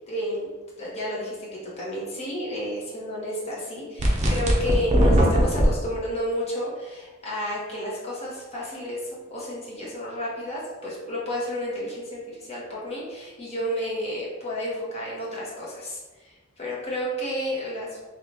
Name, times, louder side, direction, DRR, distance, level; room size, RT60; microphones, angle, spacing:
voice 1, 0.1-0.5 0.8-18.0, equal, 30° left, -6 dB, 1.0 m, -31 dB
sound 1, 4.0-5.7, equal, 35° right, 0.6 m, -19 dB
3.2 x 2.4 x 3.8 m, 1.2 s
head